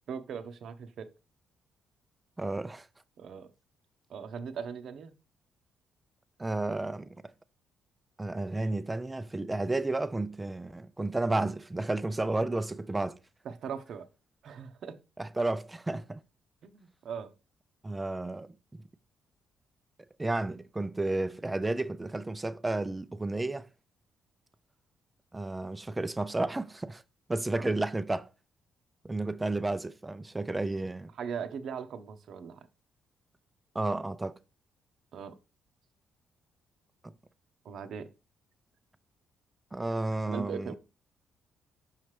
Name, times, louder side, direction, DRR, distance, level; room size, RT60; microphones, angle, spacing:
voice 1, 0.1-1.1 3.2-3.5 4.1-5.1 13.4-14.1 14.4-15.0 16.6-17.3 27.6-27.7 31.1-32.7 35.1-35.4 37.6-38.1 40.3-40.8, right 6 dB, 65° right, 0.7 m, -39 dB
voice 2, 2.4-2.9 6.4-7.1 8.2-13.2 15.2-16.2 17.8-18.8 20.2-23.7 25.3-27.0 27.3-28.3 29.0-31.1 33.7-34.4 37.0-37.1 39.7-40.8, right 2 dB, 15° right, 0.5 m, -32 dB
5.8 x 5.6 x 3.2 m
cardioid pair, 90°, 0 cm